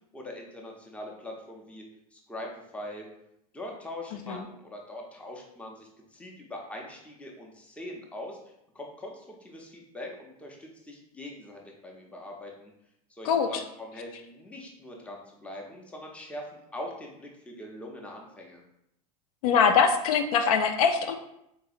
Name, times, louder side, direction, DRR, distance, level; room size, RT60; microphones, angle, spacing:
voice 1, 0.1-1.8 2.1-3.1 3.5-8.4 8.7-12.7 13.1-18.6, left 1 dB, 5° left, 0 dB, 0.6 m, -42 dB
voice 2, 19.4-21.2, left 6 dB, 70° left, 6 dB, 0.4 m, -22 dB
3.9 x 2.6 x 2.4 m, 0.79 s
supercardioid pair, 115°, 19 cm